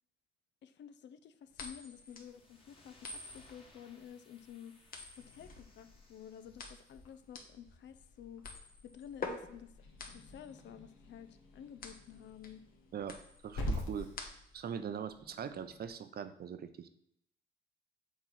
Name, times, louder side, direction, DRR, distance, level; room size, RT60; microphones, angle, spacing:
voice 1, 0.6-4.7 5.2-8.4 8.8-9.7 10.1-12.6, left 9 dB, 65° left, 11 dB, 0.6 m, -51 dB
sound 1, 1.5-14.7, left 3 dB, 45° left, 1.2 m, -48 dB
sound 2, 2.1-7.0, left 2 dB, 25° left, 1.6 m, -64 dB
Growling / Hiss, 5.2-15.9, left 1 dB, 85° left, 1.5 m, -47 dB
voice 2, 13.4-14.1 14.5-16.9, right 8 dB, 50° right, 11 dB, 0.6 m, -41 dB
7.4 x 3.1 x 5.6 m, 0.73 s
cardioid pair, 90°, 20 cm